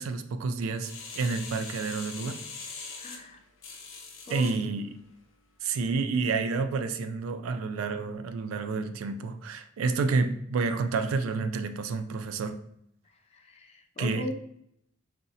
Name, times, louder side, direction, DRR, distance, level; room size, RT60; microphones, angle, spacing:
voice 1, 0.0-2.4 4.3-5.0 5.6-12.6 14.0-14.3, right 4 dB, 85° right, 0.3 m, -29 dB
sound 1, 0.8-4.6 5.1-5.2, left 4 dB, 75° left, 0.6 m, -42 dB
voice 2, 3.0-3.4 4.3-4.6 13.3-14.3, left 2 dB, 30° left, 0.3 m, -38 dB
3.7 x 2.0 x 2.6 m
head